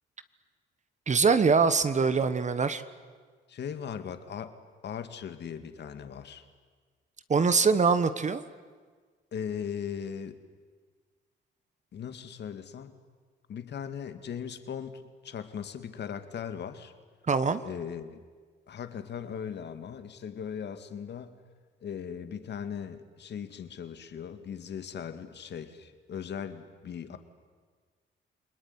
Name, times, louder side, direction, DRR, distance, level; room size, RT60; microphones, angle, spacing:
voice 1, 1.1-2.8 7.3-8.4 17.3-17.6, right 5 dB, 35° right, 12 dB, 1.4 m, -23 dB
voice 2, 3.5-4.5 4.8-6.4 9.3-10.4 11.9-13.0 13.5-16.9 17.6-18.2 18.7-21.4 21.8-27.2, left 7 dB, 60° left, 9 dB, 2.3 m, -38 dB
29.0 x 20.5 x 9.8 m, 1.5 s
cardioid pair, 90°, 20 cm